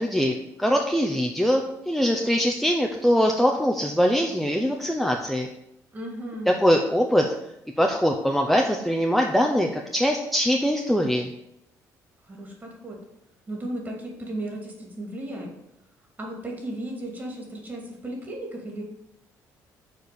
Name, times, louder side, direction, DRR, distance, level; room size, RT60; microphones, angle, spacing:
voice 1, 0.0-5.5 6.5-7.3 7.8-11.3, equal, ahead, 1 dB, 0.7 m, -22 dB
voice 2, 5.9-6.5 12.2-13.0 13.5-15.5 16.2-18.8, right 1 dB, 25° right, 0 dB, 2.7 m, -35 dB
6.9 x 4.6 x 6.8 m, 0.82 s
cardioid pair, 100°, 7 cm